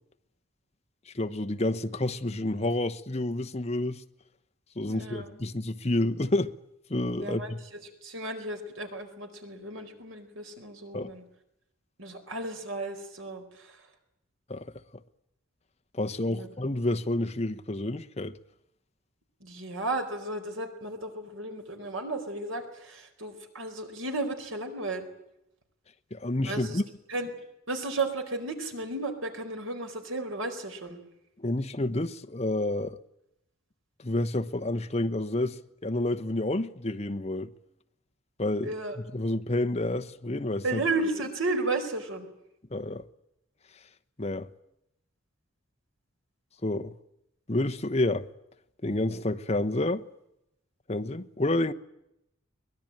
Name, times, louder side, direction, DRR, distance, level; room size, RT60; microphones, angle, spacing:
voice 1, 1.1-4.0 4.8-6.5 6.9-7.6 10.9-11.1 14.5-14.7 15.9-18.4 26.1-26.8 31.4-33.0 34.0-37.5 38.4-38.7 39.1-40.8 42.7-43.0 44.2-44.5 46.6-46.9 47.5-48.3 48.8-50.0 50.9-51.7, left 1 dB, 30° left, 1.0 m, -29 dB
voice 2, 4.9-5.3 7.2-11.2 12.0-13.9 16.3-16.5 19.4-25.1 26.4-26.8 27.1-27.3 27.7-31.0 38.6-39.0 40.6-42.3, right 2 dB, 80° right, 4.6 m, -34 dB
23.5 x 21.0 x 9.0 m
head